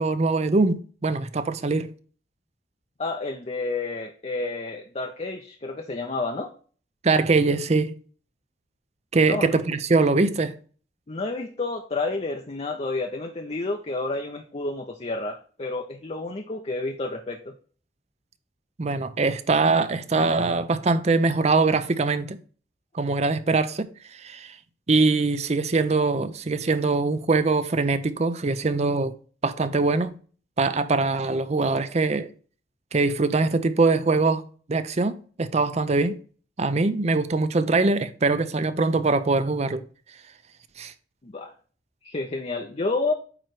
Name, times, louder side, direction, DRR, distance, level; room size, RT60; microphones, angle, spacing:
voice 1, 0.0-1.9 7.0-7.9 9.1-10.5 18.8-22.4 22.9-24.6 24.9-29.1 29.4-30.1 30.6-32.3 32.9-34.4 34.7-36.2 36.6-39.8 40.8-40.9, right 3 dB, 40° right, 0.6 m, -23 dB
voice 2, 3.0-6.5 9.2-9.5 11.1-17.5 41.2-41.5 42.0-43.1, left 3 dB, 35° left, 0.6 m, -30 dB
8.8 x 3.1 x 4.7 m
head